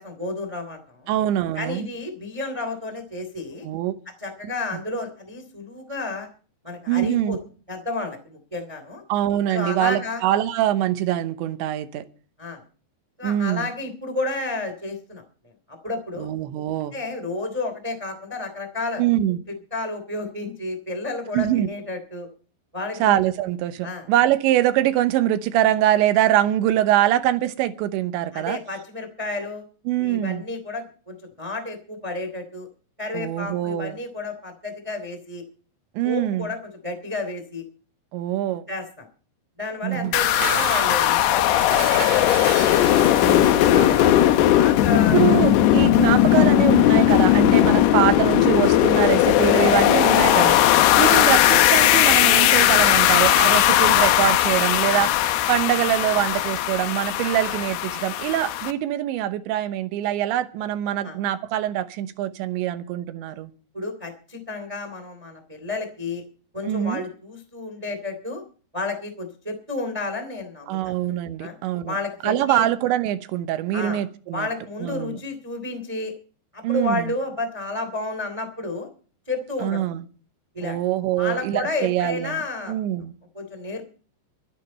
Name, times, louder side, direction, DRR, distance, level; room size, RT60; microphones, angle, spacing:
voice 1, 0.0-1.1 1.5-3.7 4.2-6.3 6.6-7.4 7.7-9.0 9.5-10.2 12.4-12.6 13.2-15.2 15.7-16.3 16.9-19.0 19.7-22.3 22.7-23.1 23.8-24.0 28.3-29.6 30.0-32.7 33.0-35.4 36.0-37.6 38.7-39.0 39.6-41.6 41.9-42.5 43.9-45.2 45.6-45.8 50.7-51.0 57.4-57.5 61.0-61.2 63.7-66.2 66.5-68.4 68.7-70.9 71.4-71.6 71.9-72.7 73.7-74.0 74.3-76.1 76.5-78.9 79.3-79.8 80.5-80.8 81.2-82.7 83.3-83.9, left 2 dB, 10° right, 1.6 m, -31 dB
voice 2, 1.1-1.9 3.6-3.9 6.9-7.4 9.1-12.0 13.2-13.7 16.2-16.9 19.0-19.4 21.3-21.7 23.0-28.6 29.9-30.5 33.1-33.9 36.0-36.5 38.1-38.6 39.8-40.1 43.2-44.2 44.9-50.6 51.0-55.1 55.5-63.5 66.6-67.0 70.7-72.0 72.2-74.5 74.8-75.2 76.6-77.1 79.6-80.0 80.6-82.4 82.7-83.1, right 12 dB, 90° right, 3.3 m, -23 dB
Dishes pots and pans, 39.9-43.7, right 9 dB, 65° right, 2.9 m, -33 dB
sound 1, 40.1-58.7, left 13 dB, 75° left, 2.7 m, -18 dB
24.5 x 9.1 x 4.3 m
omnidirectional pair, 5.1 m